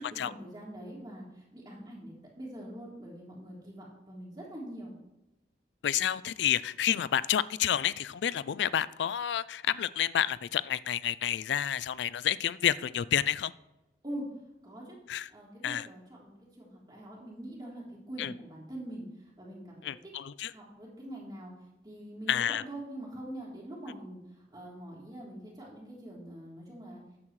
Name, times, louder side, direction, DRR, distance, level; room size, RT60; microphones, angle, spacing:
voice 1, 0.0-4.9 14.0-14.3 14.6-15.0 15.3-19.1 19.4-19.9 20.5-21.5 21.8-24.2 24.5-27.0, right 1 dB, 25° right, -4 dB, 3.3 m, -44 dB
voice 2, 5.8-13.5 15.1-15.3 15.6-15.9 18.2-18.3 19.8-20.5 22.3-22.6, left 10 dB, 85° left, 18 dB, 0.3 m, -29 dB
14.0 x 9.5 x 3.2 m, 0.94 s
head